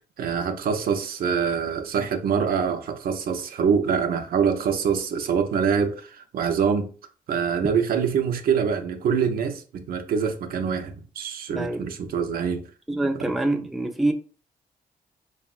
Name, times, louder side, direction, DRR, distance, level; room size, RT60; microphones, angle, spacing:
voice 1, 0.2-6.9 7.3-12.6 13.2-13.6, right 6 dB, 70° right, 0.4 m, -25 dB
voice 2, 11.5-11.8 12.9-14.1, right 2 dB, ahead, 0.3 m, -25 dB
3.4 x 2.0 x 2.3 m
cardioid pair, 85°, 16 cm